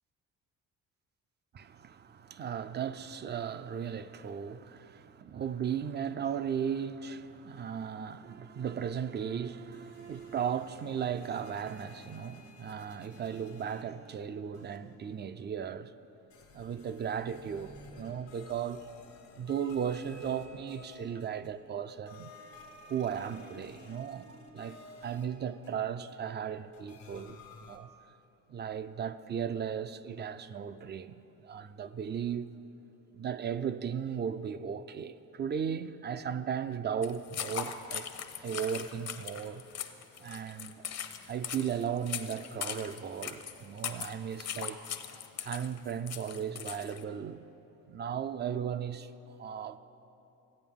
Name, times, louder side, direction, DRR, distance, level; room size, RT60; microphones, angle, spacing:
voice 1, 1.5-15.9 16.5-18.9 19.4-22.3 22.9-24.8 25.0-27.9 28.5-32.5 33.1-38.1 38.4-39.6 40.2-40.9 41.3-44.8 45.4-47.4 47.9-49.1 49.4-49.8, right 8 dB, 35° right, 0.4 m, -36 dB
sound 1, 9.7-14.2 14.5-15.1 16.3-21.7 22.1-26.1 26.7-27.8, left 3 dB, 85° left, 1.2 m, -54 dB
sound 2, 37.0-47.0, left 8 dB, 60° left, 0.7 m, -40 dB
15.0 x 8.3 x 3.6 m
cardioid pair, 90°, 30 cm